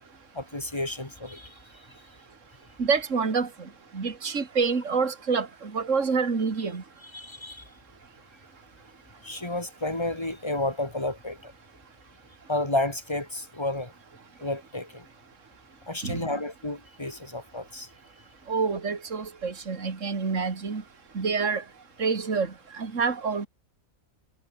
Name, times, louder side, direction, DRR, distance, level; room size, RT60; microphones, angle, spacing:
voice 1, 0.3-1.5 7.0-7.6 9.2-11.5 12.5-13.9 14.4-15.0 15.9-17.9, left 2 dB, 20° left, 3.4 m, -31 dB
voice 2, 2.8-3.5 3.9-6.8 16.0-16.2 18.5-20.8 21.1-21.6 22.0-23.5, right 5 dB, 60° right, 2.7 m, -27 dB
omnidirectional pair, 1.5 m